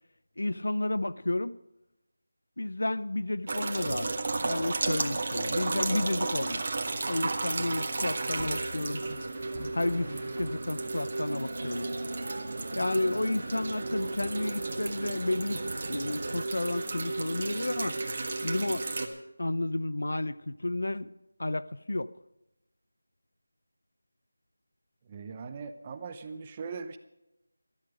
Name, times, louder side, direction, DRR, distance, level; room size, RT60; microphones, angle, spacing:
voice 1, 0.4-1.6 2.6-4.1 4.4-6.6 7.0-9.0 9.7-11.9 12.7-18.0 18.4-18.9 19.4-21.1 21.4-22.1, left 2 dB, 75° left, 0.7 m, -31 dB
sound 1, 3.5-19.1, right 3 dB, 35° right, 1.6 m, -33 dB
sound 2, 8.4-11.0, equal, 10° left, 5.9 m, -45 dB
sound 3, 11.3-16.4, right 1 dB, 85° right, 0.7 m, -40 dB
voice 2, 25.1-27.0, right 5 dB, 20° right, 0.8 m, -40 dB
14.5 x 13.0 x 5.1 m
figure-of-eight pair, 175°, 0 cm